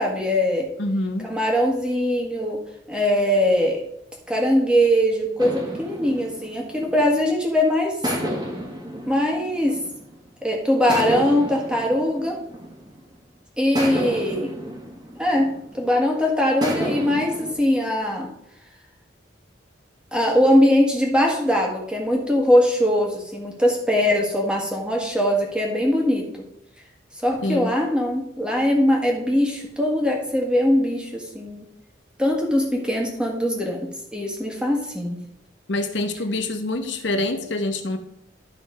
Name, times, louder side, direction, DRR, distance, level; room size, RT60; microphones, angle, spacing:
voice 1, 0.0-0.7 1.2-2.6 2.9-3.8 4.3-8.0 9.1-9.8 10.4-12.4 13.6-14.5 15.2-18.3 20.1-26.2 27.2-31.6 32.2-33.8 34.1-35.2, equal, 5° right, 0 dB, 1.6 m, -21 dB
voice 2, 0.8-1.3 27.4-27.7 35.7-38.0, left 2 dB, 70° left, 7 dB, 0.8 m, -25 dB
sound 1, 5.4-7.4 8.0-10.3 10.9-13.2 13.8-15.9 16.6-17.5, equal, 20° right, 1.5 m, -31 dB
12.5 x 4.1 x 5.1 m, 0.77 s
head